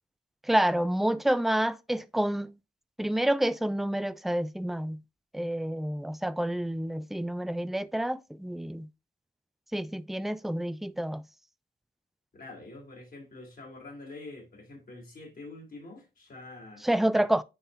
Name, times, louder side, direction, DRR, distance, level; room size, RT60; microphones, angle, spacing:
voice 1, 0.5-2.5 3.0-5.0 5.3-8.9 9.7-11.2 16.8-17.4, right 1 dB, ahead, 0.3 m, -28 dB
voice 2, 12.3-17.3, left 2 dB, 50° left, 3.6 m, -46 dB
9.7 x 3.9 x 2.7 m
wide cardioid pair, 120°, 19 cm